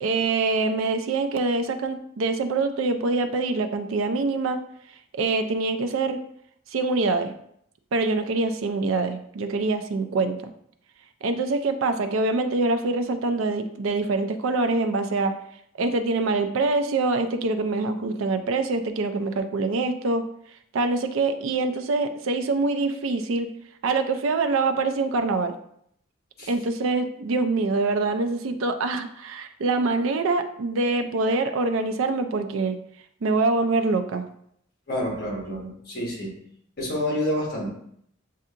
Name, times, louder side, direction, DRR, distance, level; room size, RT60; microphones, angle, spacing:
voice 1, 0.0-4.6 5.1-6.2 6.7-7.3 7.9-10.4 11.2-15.4 15.8-20.2 20.7-23.5 23.8-25.5 26.5-32.8 33.2-34.2, right 3 dB, 80° right, 7 dB, 0.4 m, -24 dB
voice 2, 34.9-36.3 36.8-37.7, left 1 dB, 50° left, -2 dB, 1.4 m, -28 dB
7.4 x 2.7 x 2.5 m, 0.69 s
head